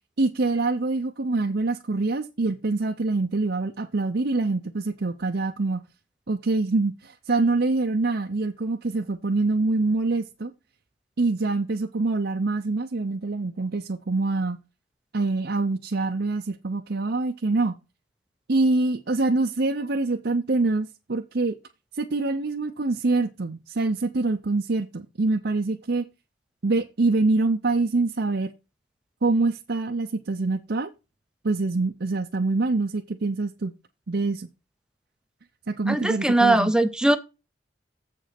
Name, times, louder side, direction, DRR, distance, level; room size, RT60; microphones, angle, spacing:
voice 1, 0.2-5.8 6.3-10.5 11.2-14.6 15.1-17.8 18.5-21.6 21.9-26.1 26.6-28.5 29.2-30.9 31.4-33.7 34.1-34.5 35.7-36.7, right 3 dB, 55° right, 0.7 m, -25 dB
voice 2, 35.9-37.2, right 2 dB, 5° right, 0.7 m, -20 dB
7.6 x 5.2 x 5.9 m
head